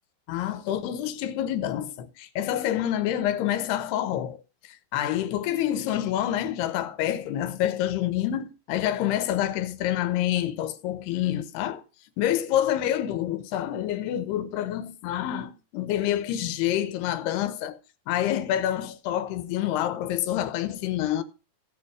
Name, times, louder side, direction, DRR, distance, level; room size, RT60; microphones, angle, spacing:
voice 1, 0.3-4.4 4.6-11.8 12.2-17.8 18.1-21.2, left 11 dB, 90° left, 3.0 m, -27 dB
16.0 x 5.4 x 4.8 m
omnidirectional pair, 4.5 m